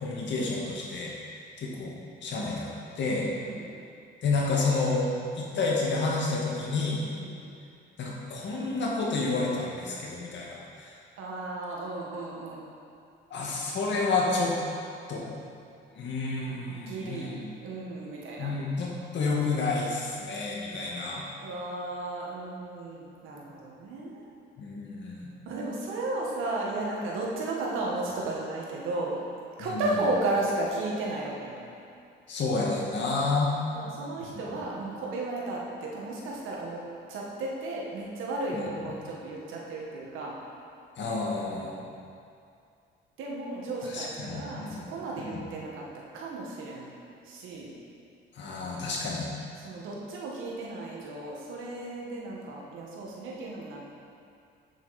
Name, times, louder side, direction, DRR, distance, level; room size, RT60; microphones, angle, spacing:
voice 1, 0.0-1.1 1.6-1.9 2.2-3.3 4.2-5.1 5.3-7.0 8.0-10.9 13.3-14.6 15.1-15.2 15.9-17.5 18.4-21.3 24.6-25.3 29.7-29.9 32.3-33.5 34.3-34.4 38.5-38.6 41.0-41.9 43.9-44.8 45.2-45.4 48.3-49.3, left 3 dB, 65° left, -3 dB, 2.0 m, -30 dB
voice 2, 3.4-3.8 7.2-7.5 11.2-12.7 16.7-18.5 21.4-24.3 25.5-29.2 29.6-31.6 33.7-36.8 37.1-40.4 43.2-45.9 46.1-46.9 47.2-47.7 49.6-53.9, right 2 dB, 90° right, -3 dB, 1.7 m, -34 dB
8.5 x 7.3 x 4.3 m, 2.4 s
cardioid pair, 90°, 20 cm